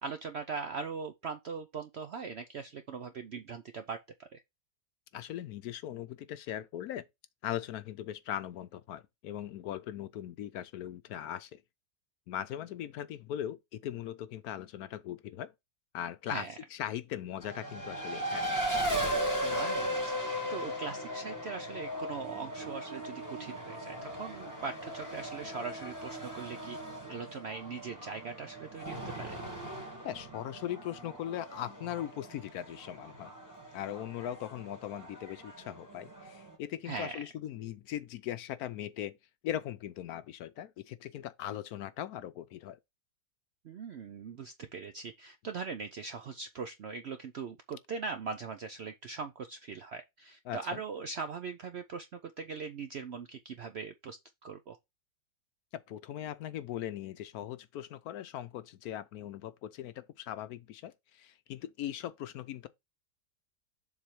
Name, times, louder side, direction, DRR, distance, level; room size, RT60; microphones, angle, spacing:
voice 1, 0.0-4.4 16.3-16.5 19.4-26.8 27.1-29.4 36.8-37.2 43.6-54.8, right 5 dB, 70° right, 0.6 m, -41 dB
voice 2, 5.1-7.0 7.4-11.6 12.3-15.5 15.9-16.4 16.7-18.5 30.0-33.3 33.7-39.2 39.4-42.8 50.5-50.8 55.7-62.7, left 11 dB, 70° left, 1.0 m, -39 dB
Race car auto racing, 17.4-36.5, equal, 10° right, 1.7 m, -38 dB
7.2 x 3.5 x 4.6 m
omnidirectional pair, 1.8 m